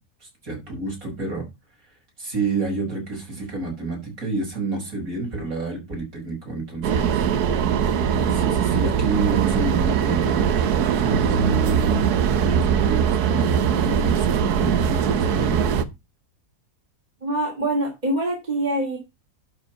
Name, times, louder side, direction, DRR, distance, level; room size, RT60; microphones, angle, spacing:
voice 1, 0.2-1.5 2.2-7.3 8.3-12.3 12.7-15.9, right 3 dB, 55° right, 6.3 m, -29 dB
sound 1, 6.8-15.8, right 8 dB, 75° right, 1.4 m, -21 dB
voice 2, 17.2-19.0, right 1 dB, 25° right, 2.9 m, -24 dB
11.5 x 5.1 x 5.6 m
omnidirectional pair, 1.7 m